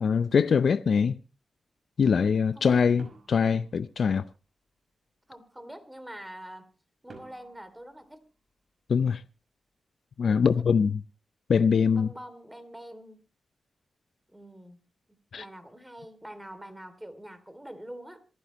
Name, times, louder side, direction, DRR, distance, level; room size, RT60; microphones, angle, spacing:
voice 1, 0.0-1.2 2.0-4.2 8.9-9.2 10.2-11.0 11.5-12.1 15.3-15.4, left 6 dB, 70° left, 0.6 m, -23 dB
sound 1, 3.0-4.5 7.1-8.9, right 3 dB, 50° right, 5.5 m, -53 dB
voice 2, 5.3-6.7 7.0-8.2 10.2-10.5 11.9-13.2 14.3-14.8 15.3-18.2, right 1 dB, 5° right, 2.9 m, -45 dB
27.0 x 9.3 x 3.1 m
cardioid pair, 70°, 0 cm